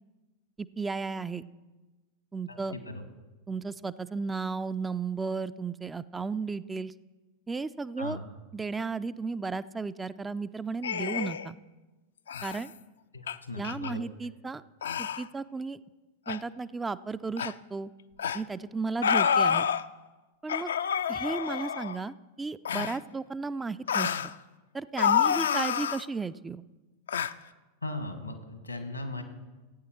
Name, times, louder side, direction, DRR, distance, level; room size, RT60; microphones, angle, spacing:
voice 1, 0.6-1.4 2.3-2.8 3.5-6.9 7.5-8.2 8.5-11.6 12.4-12.7 13.6-14.6 15.0-15.8 16.3-17.9 18.3-19.7 20.4-20.7 21.1-24.1 24.7-26.6, right 4 dB, 10° right, 14 dB, 0.3 m, -34 dB
voice 2, 2.5-3.0 8.0-8.2 13.1-14.0 27.8-29.2, left 2 dB, 85° left, 8 dB, 1.5 m, -38 dB
sound 1, 10.8-11.5 12.3-12.6 13.3-13.4 13.6-13.9 14.8-15.2 16.3-16.4 17.4-17.5 18.2-18.4 19.0-19.8 20.5-22.0 22.6-23.0 23.9-24.3 25.0-26.0 27.1-27.3, left 8 dB, 65° left, 0.4 m, -28 dB
15.0 x 8.7 x 4.4 m, 1.2 s
figure-of-eight pair, 90°, 0 cm